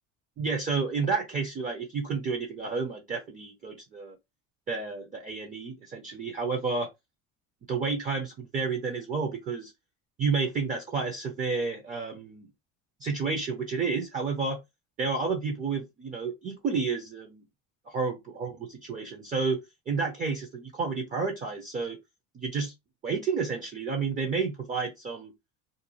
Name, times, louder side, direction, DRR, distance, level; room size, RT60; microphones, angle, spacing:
voice 1, 0.4-4.2 4.7-6.9 7.7-9.7 10.2-12.5 13.0-14.6 15.0-17.4 17.9-19.6 19.9-22.0 22.3-22.7 23.0-25.3, right 4 dB, 25° right, 0.4 m, -30 dB
2.5 x 2.2 x 2.9 m
cardioid pair, 145°, 33 cm